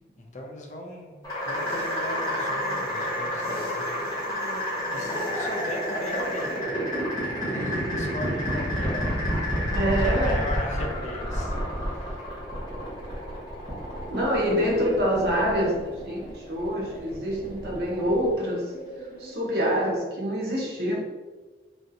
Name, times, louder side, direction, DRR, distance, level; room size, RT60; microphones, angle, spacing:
voice 1, 0.2-4.4 4.9-6.7 7.5-9.2 9.8-12.2, left 1 dB, 40° left, 1 dB, 0.4 m, -38 dB
sound 1, 1.2-20.0, equal, 20° left, 0.9 m, -30 dB
Engine, 1.3-6.6, left 1 dB, 15° right, 0.7 m, -38 dB
voice 2, 9.7-10.4 14.1-15.8 16.0-18.7 19.2-20.9, equal, 60° right, -2 dB, 0.7 m, -26 dB
3.1 x 2.6 x 2.6 m, 1.3 s
head